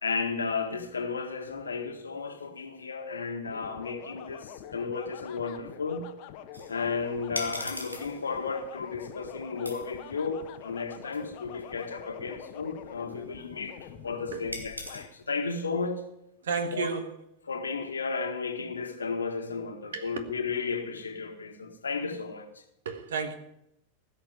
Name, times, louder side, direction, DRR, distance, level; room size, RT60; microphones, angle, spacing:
voice 1, 0.0-6.1 6.7-16.0 16.7-17.0 17.5-22.5, left 4 dB, 75° left, 1.8 m, -33 dB
sound 1, 3.4-15.1, left 9 dB, 45° left, 1.1 m, -46 dB
sound 2, 6.5-15.0, equal, 90° right, 1.9 m, -44 dB
voice 2, 16.4-17.1 19.9-20.1 22.9-23.4, right 5 dB, 65° right, 1.7 m, -31 dB
16.0 x 6.8 x 9.6 m
figure-of-eight pair, 90°, 0 cm